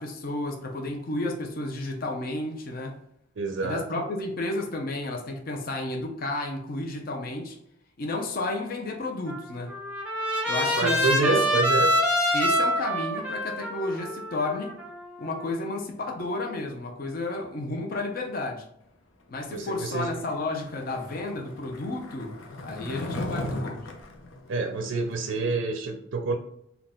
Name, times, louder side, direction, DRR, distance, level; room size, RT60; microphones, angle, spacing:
voice 1, 0.0-3.0 3.6-7.6 8.0-9.7 10.5-11.4 12.3-14.8 15.2-18.7 19.3-22.4 22.6-23.9, left 2 dB, 50° left, 0.6 m, -32 dB
voice 2, 3.4-4.0 10.6-11.9 19.5-20.1 24.5-26.4, right 3 dB, 70° right, 0.4 m, -28 dB
Trumpet, 9.3-15.4, equal, 5° right, 0.7 m, -26 dB
Skateboard, 19.9-25.4, left 1 dB, 90° left, 0.6 m, -38 dB
3.8 x 2.3 x 3.6 m
head